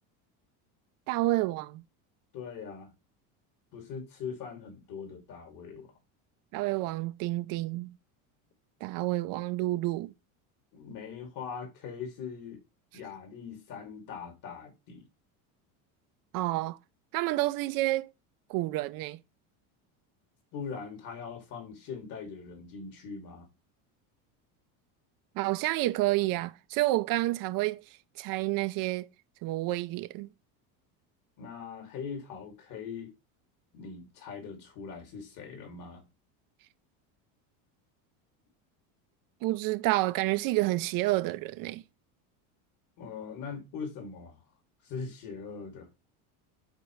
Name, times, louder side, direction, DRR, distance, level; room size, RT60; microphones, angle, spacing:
voice 1, 1.1-1.8 6.5-7.9 8.8-10.1 16.3-16.8 17.1-18.1 18.5-19.2 25.4-27.8 28.2-29.1 29.4-30.3 39.4-41.8, right 18 dB, 50° right, 0.7 m, -29 dB
voice 2, 2.3-2.9 3.7-5.9 10.7-12.6 12.9-15.1 20.5-23.5 31.4-33.1 33.7-36.1 43.0-44.4 44.8-45.9, left 6 dB, 50° left, 2.7 m, -41 dB
10.5 x 4.5 x 3.2 m
supercardioid pair, 125°, 42 cm